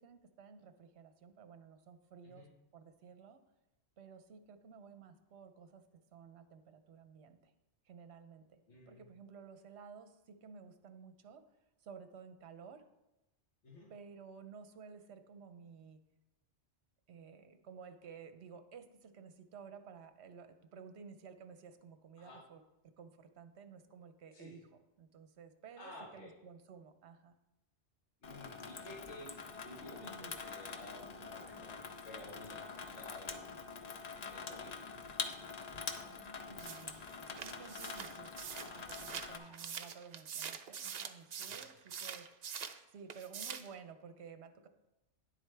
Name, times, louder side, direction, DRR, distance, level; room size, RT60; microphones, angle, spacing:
voice 1, 0.0-2.5 2.7-3.4 4.0-7.5 7.8-8.6 8.9-11.4 11.8-12.8 13.9-16.0 17.1-22.6 23.0-24.7 25.0-27.3 30.0-30.4 31.2-31.3 31.5-31.6 36.1-37.0 37.4-38.3 38.6-42.5 42.9-44.7, right 6 dB, 70° right, 9 dB, 1.0 m, -54 dB
voice 2, 8.7-9.0 13.6-13.9 22.2-22.4 24.3-24.6 25.8-26.3 28.2-29.3 29.6-33.5 34.2-34.9 39.4-39.6 41.5-41.8, left 2 dB, 75° left, -4 dB, 1.7 m, -53 dB
Water tap faucet / Sink (filling or washing), 28.2-39.4, left 5 dB, 45° left, 0.6 m, -45 dB
sound 1, 36.6-42.8 43.1-43.7, right 7 dB, 55° right, 0.5 m, -44 dB
10.0 x 7.8 x 3.3 m, 0.96 s
omnidirectional pair, 1.2 m